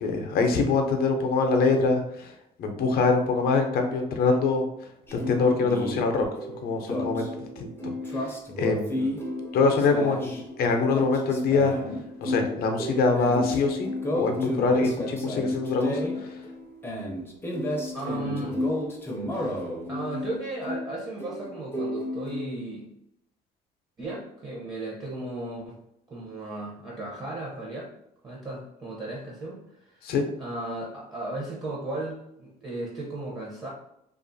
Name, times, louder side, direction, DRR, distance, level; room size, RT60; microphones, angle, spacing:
voice 1, 0.0-2.3 2.6-4.6 5.1-6.3 6.6-7.3 7.6-7.7 8.1-8.3 8.6-9.1 9.5-11.7 12.2-16.4 30.0-30.2, left 4 dB, 65° left, 4 dB, 0.5 m, -24 dB
sound 1, 5.1-22.4, left 1 dB, 15° left, 0.5 m, -32 dB
voice 2, 17.9-18.6 19.3-22.9 24.0-25.8 26.1-27.9 28.2-33.7, right 2 dB, 25° right, -4 dB, 0.7 m, -36 dB
2.5 x 2.3 x 2.6 m, 0.79 s
cardioid pair, 110°, 17 cm